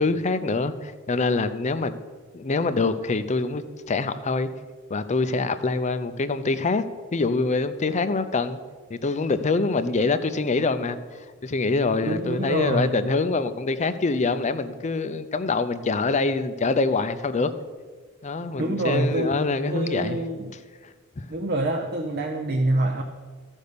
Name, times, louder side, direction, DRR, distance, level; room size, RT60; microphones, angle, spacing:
voice 1, 0.0-2.0 2.3-4.5 4.9-6.8 7.1-8.6 8.9-17.5 18.2-20.2 21.2-21.3, left 3 dB, 30° left, 12 dB, 0.5 m, -25 dB
voice 2, 12.1-13.1 18.5-19.3 19.7-20.5 21.3-23.0, right 1 dB, 45° right, 3 dB, 0.7 m, -26 dB
13.5 x 5.3 x 6.8 m, 1.5 s
head